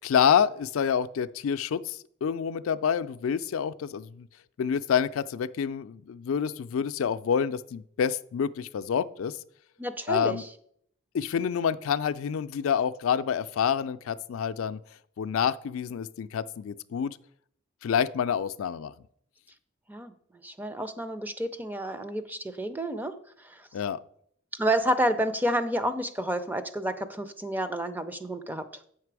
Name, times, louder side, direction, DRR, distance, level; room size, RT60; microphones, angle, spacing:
voice 1, 0.0-4.3 4.6-9.4 10.1-10.4 11.1-14.8 15.2-17.2 17.8-18.9 23.7-24.0, left 7 dB, 70° left, 13 dB, 0.4 m, -27 dB
voice 2, 9.8-10.5 19.9-20.1 20.4-23.1 23.4-23.7 24.6-28.6, right 1 dB, 10° right, 10 dB, 0.5 m, -29 dB
8.1 x 5.9 x 4.7 m, 0.66 s
head